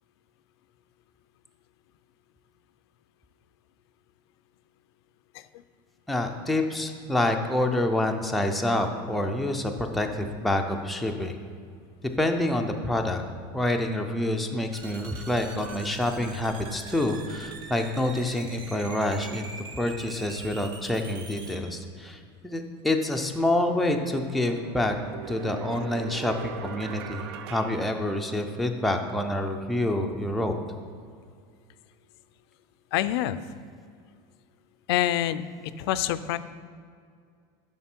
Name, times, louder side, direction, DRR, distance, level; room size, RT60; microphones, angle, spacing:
voice 1, 6.1-11.4 12.0-13.2 13.5-25.0 25.3-30.6, left 1 dB, ahead, 3 dB, 0.3 m, -27 dB
sound 1, 14.7-21.6, right 4 dB, 35° right, 0.7 m, -43 dB
sound 2, 22.8-22.9 23.5-28.7, right 7 dB, 85° right, 0.5 m, -41 dB
voice 2, 32.9-33.4 34.9-36.4, left 13 dB, 85° left, 13 dB, 0.4 m, -26 dB
7.1 x 5.9 x 4.4 m, 2.2 s
cardioid pair, 165°, 13 cm